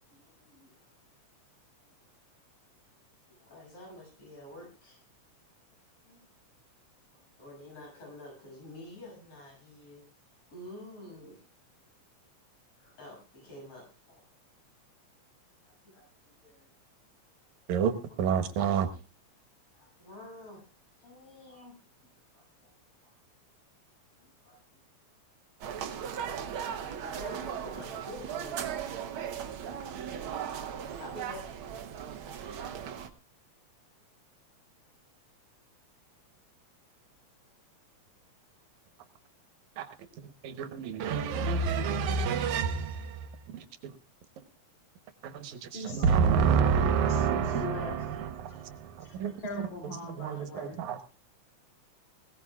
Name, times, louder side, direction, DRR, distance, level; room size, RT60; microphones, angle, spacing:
voice 1, 0.1-0.9 2.0-2.1 3.3-5.0 6.0-6.2 7.1-10.0 10.5-11.5 12.8-14.2 15.6-16.7 18.1-18.2 19.7-20.6 21.0-21.8 22.3-22.7 23.0-23.2 24.1-24.8 26.6-28.6 31.0-31.4, left 1 dB, 55° left, 8.0 m, -49 dB
voice 2, 17.7-18.9 39.8-39.9 40.2-43.9 45.2-49.4 50.2-51.0, right 6 dB, 80° right, 2.4 m, -29 dB
sound 1, 25.6-33.1, right 8 dB, 65° right, 1.4 m, -37 dB
voice 3, 45.7-48.2 48.5-48.6 49.0-50.8, left 2 dB, 75° left, 4.2 m, -41 dB
21.0 x 17.0 x 2.4 m
omnidirectional pair, 3.3 m